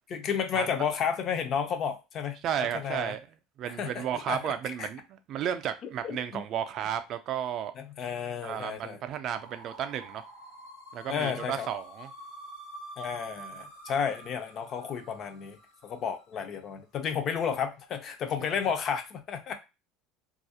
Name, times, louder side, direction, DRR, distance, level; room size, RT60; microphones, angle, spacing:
voice 1, 0.1-2.4 2.7-3.2 3.6-4.5 4.8-4.9 6.0-6.4 7.8-9.0 11.1-11.7 13.0-15.6 15.8-19.5, left 7 dB, 40° left, 0.4 m, -32 dB
voice 2, 2.4-3.2 3.6-7.7 8.4-10.2 10.9-12.1, right 9 dB, 50° right, 0.3 m, -33 dB
sound 1, 9.3-16.2, right 1 dB, 85° left, 1.0 m, -47 dB
2.3 x 2.0 x 2.7 m
supercardioid pair, 130°, 0 cm